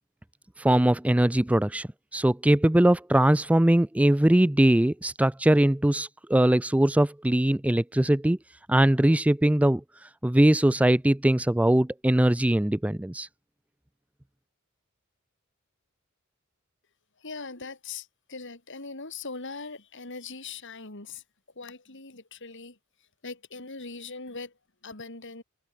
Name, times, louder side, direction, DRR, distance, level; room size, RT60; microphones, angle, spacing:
voice 1, 0.6-8.4 8.7-9.8 10.2-13.3, right 1 dB, 5° right, 0.4 m, -21 dB
voice 2, 17.2-21.2 21.6-22.8 23.2-24.5 24.8-25.4, left 4 dB, 60° left, 3.8 m, -40 dB
head